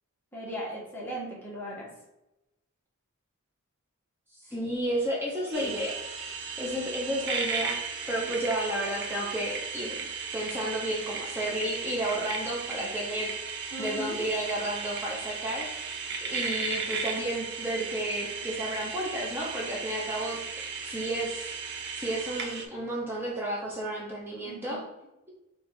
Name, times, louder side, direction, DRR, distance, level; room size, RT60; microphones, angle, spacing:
voice 1, 0.3-1.9 13.7-14.2 24.4-24.8, equal, 10° left, -5 dB, 1.2 m, -37 dB
voice 2, 4.5-6.0 6.6-7.8 8.1-10.1 10.3-15.7 16.2-20.4 20.8-21.5 21.9-24.8, right 1 dB, 10° right, -3 dB, 0.7 m, -32 dB
sound 1, 5.5-22.6, right 5 dB, 50° right, 0.8 m, -36 dB
4.8 x 2.4 x 4.4 m, 0.95 s
head